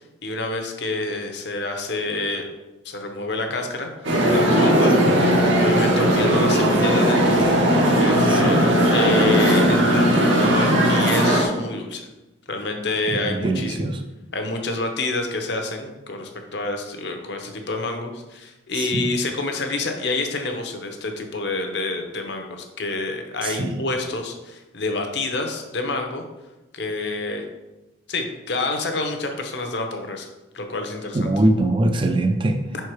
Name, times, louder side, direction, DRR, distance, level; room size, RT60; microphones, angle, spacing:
voice 1, 0.2-2.5 2.8-3.9 4.3-4.9 5.6-7.4 8.0-12.1 12.5-13.8 14.3-26.2 26.7-27.4 28.1-30.3 30.5-31.3, left 2 dB, 60° left, 4 dB, 0.9 m, -28 dB
sound 1, 4.0-11.4, equal, 75° right, 1.4 m, -18 dB
voice 2, 8.3-8.6 13.1-14.0 18.7-19.1 23.4-23.8 31.1-32.6, right 1 dB, 25° right, 6 dB, 0.5 m, -22 dB
5.5 x 4.6 x 4.7 m, 1.1 s
head